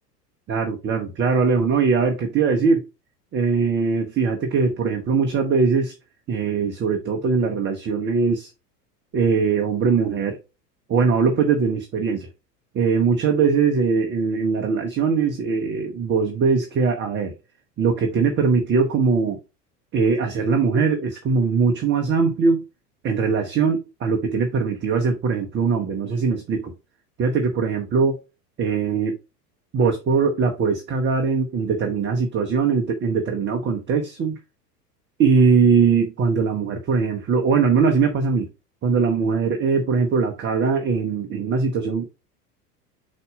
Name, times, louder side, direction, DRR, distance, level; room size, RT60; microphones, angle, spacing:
voice 1, 0.5-2.9 3.3-5.9 6.3-8.5 9.1-10.4 10.9-12.3 12.7-17.3 17.8-19.4 19.9-22.6 23.0-26.7 27.2-28.2 28.6-29.2 29.7-34.3 35.2-38.5 38.8-42.1, right 5 dB, 25° right, 1.0 m, -21 dB
5.4 x 4.1 x 5.0 m
figure-of-eight pair, 85°, 48 cm